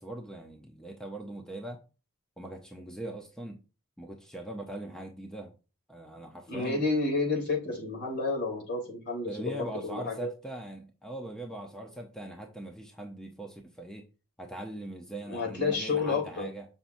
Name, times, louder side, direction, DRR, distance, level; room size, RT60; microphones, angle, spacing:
voice 1, 0.0-1.8 2.4-3.6 4.0-5.5 5.9-6.8 9.2-14.0 14.4-16.7, right 1 dB, 5° left, 2 dB, 0.8 m, -41 dB
voice 2, 6.5-10.3 15.3-16.4, left 3 dB, 50° left, -1 dB, 3.4 m, -30 dB
7.0 x 5.9 x 2.7 m, 0.31 s
head